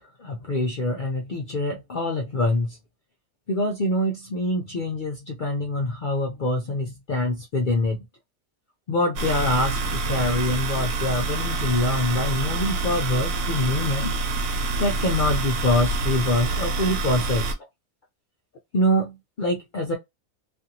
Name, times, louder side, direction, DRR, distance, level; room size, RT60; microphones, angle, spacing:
voice 1, 0.2-2.8 3.5-8.0 8.9-14.1 14.8-17.5 18.7-19.9, left 1 dB, 75° left, 0.4 m, -25 dB
sound 1, 9.2-17.5, right 3 dB, 90° right, 1.2 m, -27 dB
2.5 x 2.5 x 2.7 m
omnidirectional pair, 1.5 m